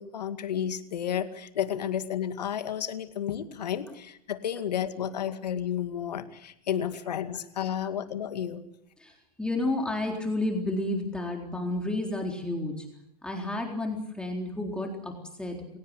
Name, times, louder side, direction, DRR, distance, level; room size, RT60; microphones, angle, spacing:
voice 1, 0.0-8.6, left 9 dB, 90° left, 10 dB, 2.2 m, -32 dB
voice 2, 9.0-12.9 13.2-15.8, left 2 dB, 5° left, 1 dB, 3.9 m, -31 dB
27.5 x 17.5 x 8.3 m, 0.78 s
hypercardioid pair, 125°, 20 cm